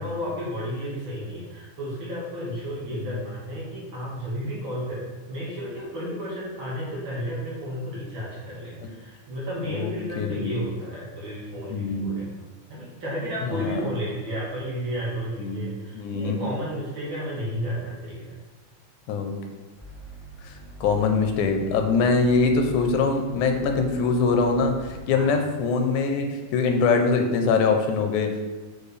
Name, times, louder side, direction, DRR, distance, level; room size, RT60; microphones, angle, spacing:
voice 1, 0.0-12.4 12.7-18.3 25.1-25.4, equal, 50° right, -7 dB, 1.9 m, -32 dB
voice 2, 9.7-10.6 11.7-12.2 13.4-13.9 15.4-15.6 15.9-16.4 19.1-19.3 20.4-20.5 20.8-28.5, left 4 dB, 90° left, 4 dB, 2.1 m, -23 dB
sound 1, 19.7-25.0, right 3 dB, 50° left, 0.9 m, -43 dB
6.7 x 4.6 x 3.3 m, 1.3 s
omnidirectional pair, 3.4 m